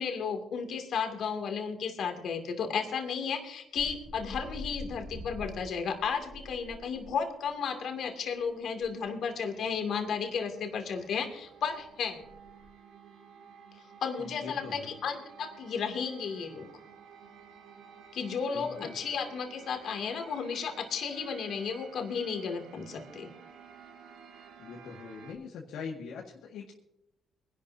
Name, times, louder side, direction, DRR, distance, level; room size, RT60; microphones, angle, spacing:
voice 1, 0.0-12.2 14.0-16.7 18.1-23.3, left 6 dB, 70° left, 3 dB, 2.5 m, -33 dB
sound 1, 3.8-7.2 7.5-7.6 8.5-8.6 8.8-8.9 9.3-9.4 9.7-9.9 10.6-10.7 10.9-12.7, left 1 dB, 5° left, 4.4 m, -45 dB
sound 2, 5.4-25.3, right 6 dB, 85° right, 2.1 m, -54 dB
voice 2, 14.2-14.9 18.5-19.0 24.6-26.7, left 5 dB, 85° left, -2 dB, 1.9 m, -42 dB
23.5 x 11.5 x 2.8 m, 0.80 s
cardioid pair, 90°, 0 cm